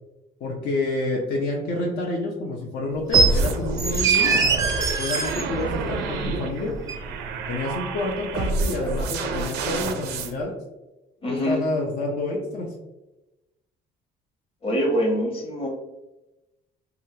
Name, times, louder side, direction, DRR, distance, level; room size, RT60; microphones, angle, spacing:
voice 1, 0.4-4.4 5.0-6.7 7.5-10.5 11.3-12.7, left 2 dB, 70° left, -2 dB, 0.6 m, -28 dB
sound 1, 3.1-3.3 3.8-5.4 6.9-7.0, right 5 dB, 20° right, 0.4 m, -21 dB
sound 2, 3.1-10.3, right 3 dB, 85° right, 0.4 m, -28 dB
voice 2, 11.2-11.6 14.6-15.7, equal, 35° left, -2 dB, 1.1 m, -24 dB
3.1 x 2.4 x 2.7 m, 0.97 s
cardioid pair, 110°, 17 cm